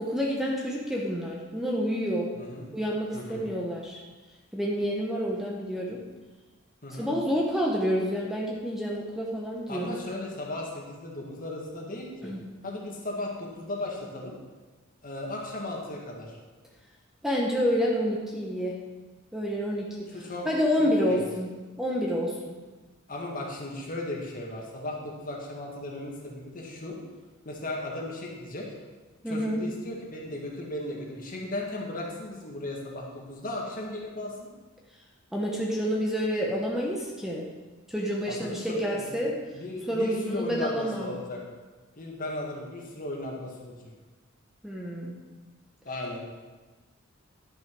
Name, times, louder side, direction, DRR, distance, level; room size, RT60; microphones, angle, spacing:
voice 1, 0.0-2.3 2.7-4.0 4.5-6.0 6.9-9.9 12.2-12.4 17.2-18.8 19.3-21.5 21.8-22.6 29.2-29.6 35.3-37.4 37.9-39.3 39.9-41.2 44.6-45.2, equal, ahead, -2 dB, 0.9 m, -28 dB
voice 2, 2.3-2.7 3.1-3.4 6.8-7.1 9.7-12.3 12.6-14.4 15.0-16.4 20.1-20.5 20.8-21.2 23.1-27.0 27.4-28.7 29.3-34.5 38.3-39.2 39.5-41.4 42.0-43.9 45.9-46.2, left 1 dB, 40° left, -2 dB, 1.8 m, -36 dB
11.0 x 6.4 x 4.7 m, 1.3 s
head